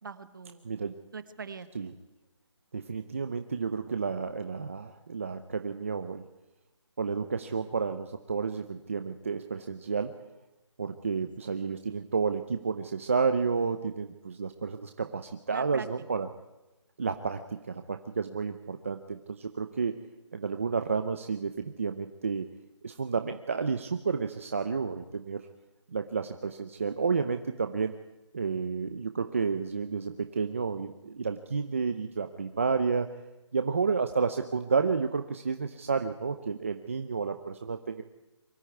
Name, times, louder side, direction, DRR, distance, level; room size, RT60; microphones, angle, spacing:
voice 1, 0.0-0.7 1.1-1.9 11.4-12.1 15.5-15.9, right 5 dB, 45° right, 12 dB, 1.4 m, -43 dB
voice 2, 2.7-6.2 7.0-10.1 10.8-16.3 17.0-20.0 20.3-22.5 22.8-25.5 25.9-27.9 28.3-33.1 33.5-38.0, right 5 dB, 25° right, 8 dB, 0.7 m, -31 dB
23.5 x 13.5 x 9.3 m, 1.0 s
hypercardioid pair, 180°, 15 cm